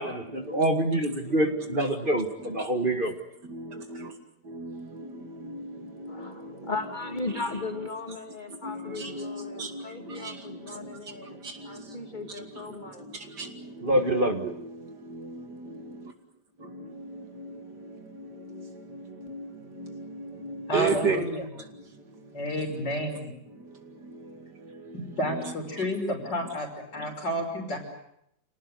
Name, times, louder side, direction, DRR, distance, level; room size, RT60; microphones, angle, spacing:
voice 1, 0.0-3.1 13.8-14.5, right 1 dB, 30° right, 6 dB, 1.7 m, -26 dB
voice 2, 1.4-1.8 2.4-3.0 3.5-4.1 4.5-7.9 8.6-10.6 10.9-11.0 11.4-11.8 12.4-12.7 13.4-13.5 13.8-14.7 15.1-15.7 16.7-19.5 19.8-21.3 25.2-25.5, right 3 dB, 70° right, 6 dB, 3.1 m, -36 dB
voice 3, 6.1-11.4 11.6-13.0, left 3 dB, 25° left, 6 dB, 2.7 m, -37 dB
voice 4, 20.7-21.4 22.3-23.3 24.9-26.7 26.9-27.8, equal, 75° left, 2 dB, 6.1 m, -30 dB
27.5 x 18.5 x 9.4 m, 0.77 s
omnidirectional pair, 1.9 m